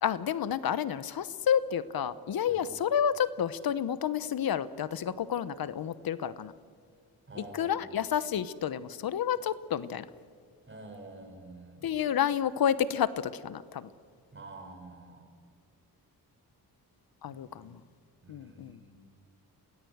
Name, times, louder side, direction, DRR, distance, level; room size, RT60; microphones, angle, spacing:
voice 1, 0.0-6.5 7.4-10.1 11.8-13.9 17.2-17.8 18.3-18.8, left 9 dB, 65° left, 16 dB, 0.9 m, -30 dB
voice 2, 7.3-7.9 10.7-11.9 14.3-15.3 17.3-17.7 18.2-18.9, right 2 dB, 30° right, 4 dB, 5.1 m, -48 dB
28.5 x 18.5 x 7.9 m, 2.1 s
cardioid pair, 110°, 38 cm